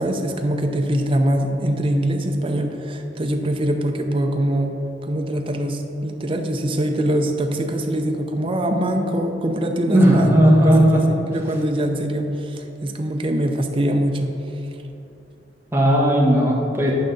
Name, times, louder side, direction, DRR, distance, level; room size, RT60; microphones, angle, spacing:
voice 1, 0.0-4.7 5.0-10.3 10.6-11.0 11.3-14.3, right 1 dB, 30° right, 3 dB, 0.6 m, -23 dB
voice 2, 9.9-11.0 15.7-16.9, equal, 15° right, -4 dB, 1.2 m, -15 dB
8.7 x 5.4 x 3.9 m, 2.9 s
head